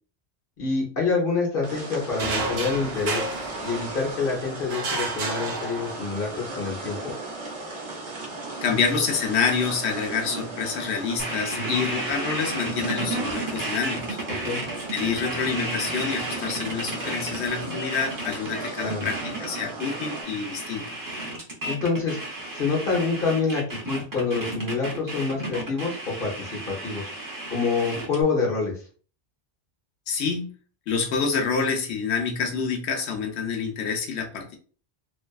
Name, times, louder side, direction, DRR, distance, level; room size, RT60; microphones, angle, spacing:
voice 1, 0.6-3.3 3.6-7.1 11.5-11.8 14.4-14.6 18.8-19.1 21.7-22.2 22.5-27.1 27.5-28.8, left 4 dB, 55° left, -2 dB, 1.0 m, -27 dB
sound 1, 1.6-20.2, right 2 dB, 50° right, 0.9 m, -37 dB
sound 2, 2.2-4.2 4.7-6.3, right 3 dB, 75° right, 0.9 m, -30 dB
voice 2, 8.6-14.2 14.9-21.0 30.1-30.5 30.9-34.6, left 5 dB, 85° left, 3 dB, 0.9 m, -27 dB
sound 3, 11.2-28.2, right 2 dB, 25° right, 0.5 m, -33 dB
2.5 x 2.4 x 2.3 m, 0.41 s
omnidirectional pair, 1.1 m